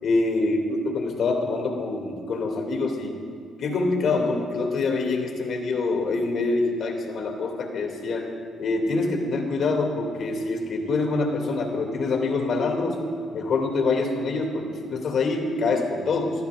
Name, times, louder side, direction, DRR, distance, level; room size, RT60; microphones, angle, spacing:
voice 1, 0.0-0.6 0.9-3.1 3.6-8.3 8.6-13.0 13.3-16.3, left 3 dB, 65° left, 2 dB, 2.5 m, -25 dB
29.5 x 14.0 x 2.5 m, 2.3 s
supercardioid pair, 70°, 0 cm